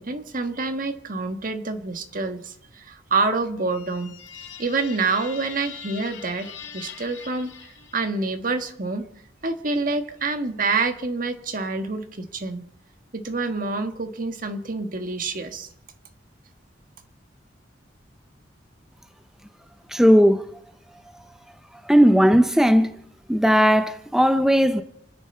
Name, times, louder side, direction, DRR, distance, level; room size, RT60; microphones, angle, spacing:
voice 1, 0.0-4.1 4.6-9.1 9.4-12.6 13.1-15.7, right 3 dB, 50° right, 1.4 m, -27 dB
sound 1, 3.7-8.4, left 7 dB, 85° left, 2.0 m, -42 dB
voice 2, 19.9-20.5 21.1-21.3 21.8-22.9 23.3-24.8, equal, 5° right, 0.6 m, -17 dB
29.0 x 10.0 x 4.4 m
head